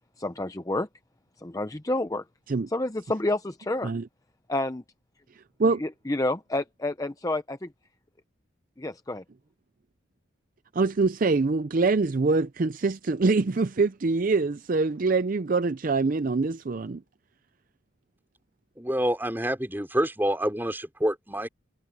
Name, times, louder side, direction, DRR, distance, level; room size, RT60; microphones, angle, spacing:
voice 1, 0.2-0.9 1.4-2.2 2.7-3.9 4.5-4.8 5.8-7.7 8.8-9.2, left 2 dB, 15° left, 0.6 m, -29 dB
voice 2, 5.4-5.8 10.7-17.0, right 3 dB, 40° right, 0.5 m, -24 dB
voice 3, 18.8-21.5, equal, 10° right, 4.1 m, -27 dB
head